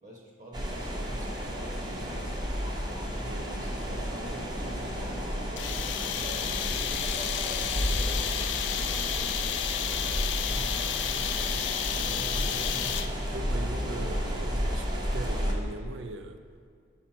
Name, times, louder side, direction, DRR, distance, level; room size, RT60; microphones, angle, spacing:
voice 1, 0.0-2.3 3.0-5.0 6.1-8.3 8.7-12.8, equal, 40° right, -1 dB, 1.0 m, -48 dB
sound 1, 0.5-15.5, equal, 25° right, 0.6 m, -32 dB
sound 2, 5.6-13.3, left 10 dB, 75° left, 0.4 m, -31 dB
voice 2, 6.6-7.1 12.0-12.2 13.3-16.4, right 2 dB, 80° right, 8 dB, 0.5 m, -40 dB
6.1 x 5.5 x 4.4 m, 2.1 s
head